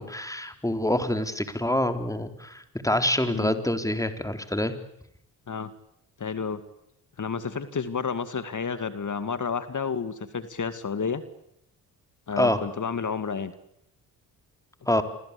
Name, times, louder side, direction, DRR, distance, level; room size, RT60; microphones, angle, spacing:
voice 1, 0.0-4.7 12.4-12.6 14.9-15.0, left 1 dB, 5° left, 7 dB, 4.2 m, -26 dB
voice 2, 6.2-6.6 7.2-11.2 12.3-13.5, left 5 dB, 40° left, 12 dB, 2.3 m, -30 dB
28.0 x 22.5 x 8.6 m, 0.77 s
hypercardioid pair, 40°, 45 cm